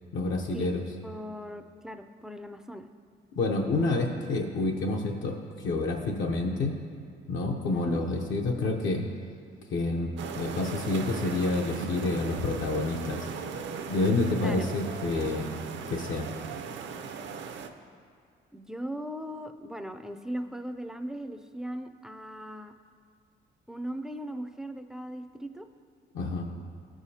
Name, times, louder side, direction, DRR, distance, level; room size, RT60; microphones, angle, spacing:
voice 1, 0.1-0.8 3.4-6.7 7.3-9.0 9.7-13.3 13.9-15.6 15.9-16.3 26.1-26.5, left 2 dB, 75° left, 0 dB, 0.7 m, -28 dB
voice 2, 1.0-2.9 7.7-8.0 14.4-14.7 18.5-22.7 23.7-25.7, equal, 5° right, 7 dB, 0.3 m, -38 dB
sound 1, 10.2-17.7, right 5 dB, 70° right, 0.5 m, -37 dB
13.0 x 4.9 x 2.8 m, 2.2 s
cardioid pair, 90°, 20 cm